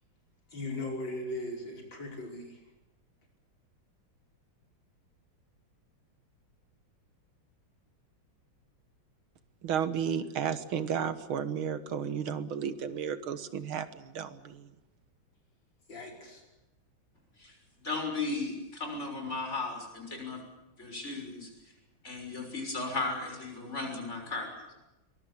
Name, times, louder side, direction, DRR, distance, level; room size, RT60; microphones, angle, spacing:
voice 1, 0.5-2.6 15.9-16.4, left 2 dB, 65° left, 1 dB, 6.0 m, -38 dB
voice 2, 9.6-14.7, right 8 dB, 80° right, 12 dB, 2.1 m, -33 dB
voice 3, 17.8-20.4 20.8-21.5 22.0-24.5, left 3 dB, 30° left, 3 dB, 6.7 m, -35 dB
23.5 x 21.0 x 8.5 m, 0.97 s
omnidirectional pair, 2.3 m